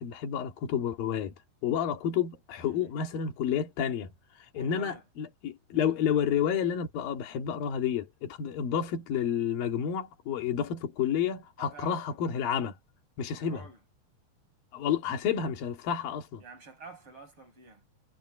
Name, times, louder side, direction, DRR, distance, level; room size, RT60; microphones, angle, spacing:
voice 1, 0.0-1.3 1.6-4.1 4.5-12.7 13.2-13.6 14.7-16.4, left 8 dB, 55° left, 4.0 m, -30 dB
voice 2, 4.5-5.0 11.6-12.0 13.3-13.8 16.4-17.8, right 4 dB, 30° right, 7.8 m, -48 dB
omnidirectional pair, 5.0 m